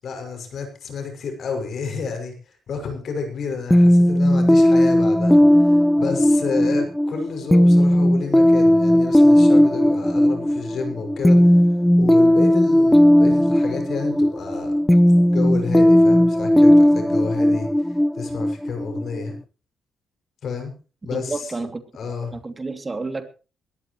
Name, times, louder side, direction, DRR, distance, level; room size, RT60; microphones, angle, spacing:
voice 1, 0.0-14.8 15.3-19.4 20.4-20.7 21.0-21.5 21.9-22.4, left 5 dB, 60° left, 6.6 m, -30 dB
sound 1, 3.7-19.3, left 1 dB, 5° left, 0.6 m, -16 dB
voice 2, 21.1-21.8 22.3-23.3, right 3 dB, 30° right, 2.9 m, -30 dB
21.5 x 14.5 x 3.2 m
supercardioid pair, 55°, 0 cm